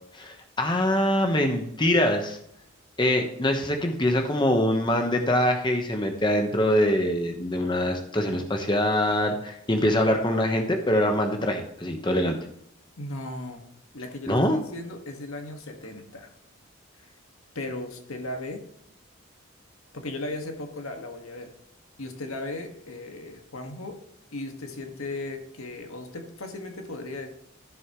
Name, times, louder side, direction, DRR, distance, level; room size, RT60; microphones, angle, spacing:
voice 1, 0.1-2.4 3.0-12.4 14.3-14.6, left 1 dB, 20° left, 3 dB, 1.1 m, -24 dB
voice 2, 13.0-13.6 13.9-16.3 17.0-17.1 17.5-18.6 19.9-21.5 22.0-24.0 24.3-27.3, left 2 dB, 85° left, 4 dB, 1.7 m, -36 dB
14.0 x 7.1 x 3.1 m, 0.73 s
head